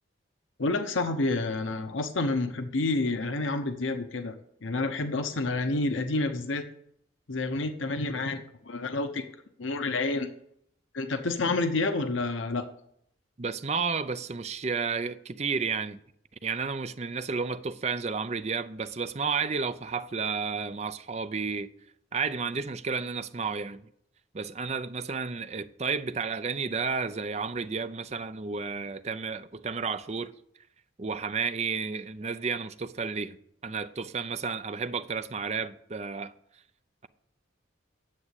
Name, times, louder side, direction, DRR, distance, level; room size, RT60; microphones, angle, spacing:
voice 1, 0.6-4.3 4.6-6.6 7.3-9.2 9.6-10.3 10.9-12.6, left 2 dB, 85° left, 0.9 m, -29 dB
voice 2, 13.4-16.0 16.4-21.7 22.1-23.8 24.3-30.3 31.0-33.4 33.6-36.3, right 5 dB, 35° right, 0.5 m, -32 dB
9.8 x 7.5 x 8.2 m
head